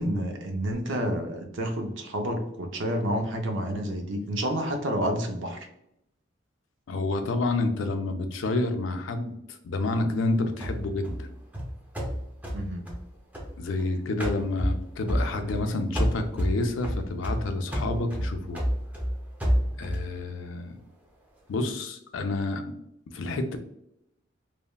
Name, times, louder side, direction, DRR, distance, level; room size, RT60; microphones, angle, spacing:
voice 1, 0.0-5.7 12.5-12.9, equal, 75° right, 4 dB, 0.6 m, -29 dB
voice 2, 6.9-11.3 13.6-18.6 19.8-20.8 21.5-22.6 23.1-23.6, left 2 dB, 80° left, 7 dB, 0.4 m, -29 dB
sound 1, 10.6-13.8 14.2-15.7 15.9-20.1, equal, 10° right, 0.5 m, -29 dB
3.3 x 2.1 x 2.2 m, 0.78 s
head